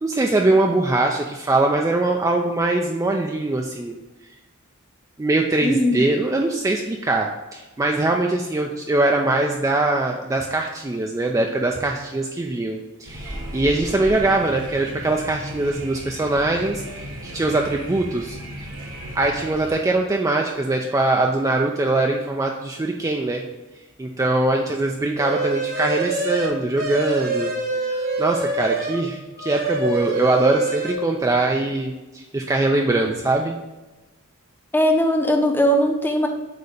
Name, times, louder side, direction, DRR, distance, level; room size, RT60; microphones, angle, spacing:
voice 1, 0.0-4.0 5.2-18.4 19.1-23.4 24.0-27.5 27.8-33.6, right 2 dB, 15° right, 1 dB, 0.4 m, -22 dB
voice 2, 5.6-6.1 34.7-36.3, equal, 10° left, 3 dB, 0.7 m, -19 dB
sound 1, 13.0-19.7, right 1 dB, 65° right, 1.3 m, -35 dB
sound 2, 25.2-29.0 29.4-30.9, right 2 dB, 45° right, 1.0 m, -25 dB
7.9 x 2.8 x 5.0 m, 1.1 s
head